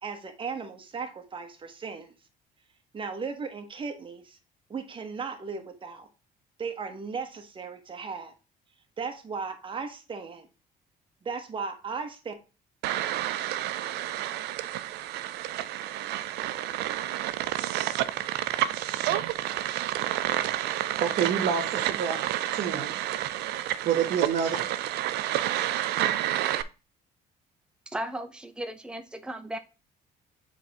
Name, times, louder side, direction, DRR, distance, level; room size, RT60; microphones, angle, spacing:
voice 1, 0.0-2.1 2.9-4.4 4.7-6.1 6.6-8.3 9.0-10.5 11.2-12.3, right 5 dB, 30° right, 1.2 m, -36 dB
sound 1, 12.8-26.6, right 13 dB, 80° right, 0.5 m, -30 dB
voice 2, 21.0-22.2 22.5-22.9 23.8-24.7, right 7 dB, 60° right, 1.2 m, -27 dB
voice 3, 27.9-29.6, right 1 dB, 5° right, 0.7 m, -36 dB
7.3 x 3.5 x 4.1 m
cardioid pair, 110°, 17 cm